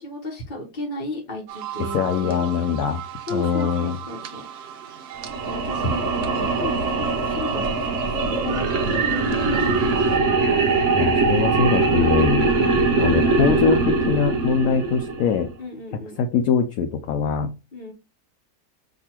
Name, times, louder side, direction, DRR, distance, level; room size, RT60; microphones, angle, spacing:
voice 1, 0.0-2.5 3.3-4.7 5.4-7.9 8.3-10.0 12.6-14.3 15.6-16.2 17.7-17.9, left 1 dB, 35° left, -2 dB, 0.9 m, -34 dB
sound 1, 1.5-10.2, right 10 dB, 85° right, 0.5 m, -36 dB
voice 2, 1.9-3.0 3.3-4.0 11.0-12.5 13.0-15.5 16.2-17.5, left 6 dB, 70° left, 6 dB, 0.9 m, -22 dB
sound 2, 5.2-15.5, right 3 dB, 60° right, 0.9 m, -22 dB
6.1 x 2.7 x 2.9 m, 0.29 s
omnidirectional pair, 1.8 m